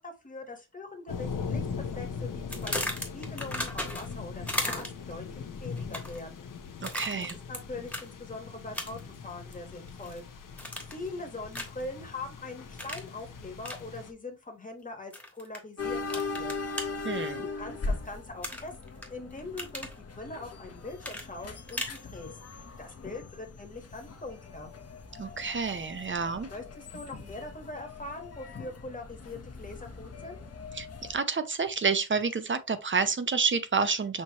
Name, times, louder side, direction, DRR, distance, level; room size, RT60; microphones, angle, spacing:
voice 1, 0.0-1.7 1.9-6.5 6.9-10.6 10.9-16.5 17.5-24.7 26.5-30.4, left 2 dB, 25° left, 1.2 m, -42 dB
sound 1, 1.1-14.1, left 5 dB, 85° left, 0.8 m, -40 dB
sound 2, 2.5-4.2 4.5-5.1 5.8-6.2 6.8-7.6 7.9-8.1 8.7-9.1 9.5-10.2 10.6-11.1 11.5-11.8 12.8-13.1 13.6-13.8 15.1-15.6 16.1-16.9 18.4-19.1 19.4-19.9 21.0-22.0, left 1 dB, 5° left, 1.2 m, -35 dB
voice 2, 6.8-7.4 17.0-17.4 25.2-26.5 30.7-34.2, right 5 dB, 40° right, 0.6 m, -29 dB
sound 3, 15.8-31.1, left 4 dB, 50° left, 0.8 m, -40 dB
6.4 x 2.9 x 2.8 m
wide cardioid pair, 120°, 31 cm